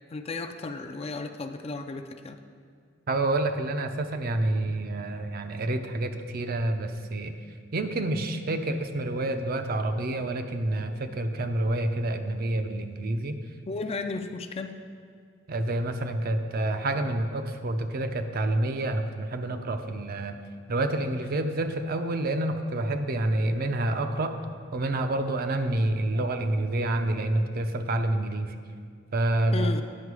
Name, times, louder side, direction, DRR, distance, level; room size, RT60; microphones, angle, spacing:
voice 1, 0.1-2.4 13.7-14.8 29.5-29.8, left 3 dB, 30° left, 8 dB, 0.4 m, -34 dB
voice 2, 3.1-7.3 7.7-13.4 15.5-20.4 20.7-24.4 24.7-28.6 29.1-29.7, right 1 dB, 50° right, 7 dB, 0.5 m, -28 dB
9.7 x 5.8 x 4.7 m, 2.1 s
head